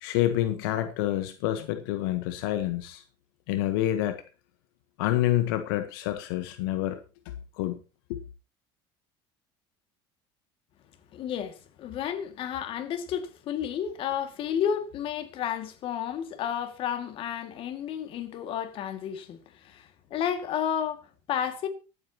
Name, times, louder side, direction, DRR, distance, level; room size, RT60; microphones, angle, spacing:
voice 1, 0.0-3.0 3.5-4.2 5.0-7.0 7.6-7.8 8.1-8.2, left 13 dB, 85° left, 1.2 m, -27 dB
voice 2, 11.1-21.7, left 9 dB, 50° left, 2.2 m, -32 dB
24.0 x 8.4 x 2.9 m
supercardioid pair, 125°, 12 cm